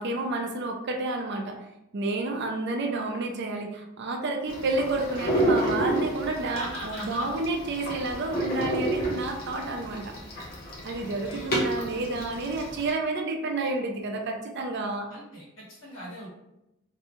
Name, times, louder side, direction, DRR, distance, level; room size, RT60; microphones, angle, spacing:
voice 1, 0.0-1.6 1.9-10.1 10.8-15.1, right 2 dB, 55° right, 3 dB, 0.4 m, -30 dB
sound 1, 4.5-12.9, right 1 dB, 50° left, 0.7 m, -30 dB
voice 2, 6.4-7.3 10.9-11.5 15.1-16.3, equal, 75° left, -6 dB, 1.2 m, -40 dB
2.6 x 2.2 x 2.9 m, 0.88 s
head